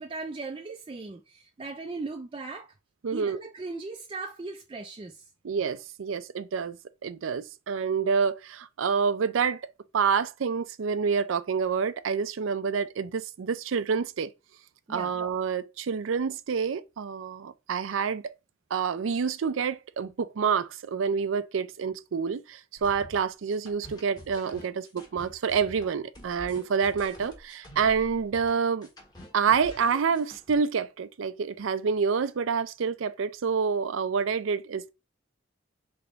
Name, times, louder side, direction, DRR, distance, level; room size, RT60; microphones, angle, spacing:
voice 1, 0.0-2.7 3.1-5.3 14.9-15.1, right 3 dB, 25° right, 0.4 m, -38 dB
voice 2, 3.0-3.4 5.4-6.8 7.0-9.7 9.9-14.3 14.9-18.3 18.7-28.9 29.3-34.9, right 6 dB, 85° right, 0.4 m, -28 dB
sound 1, 22.8-30.5, equal, 20° left, 1.1 m, -47 dB
3.5 x 3.4 x 3.9 m
head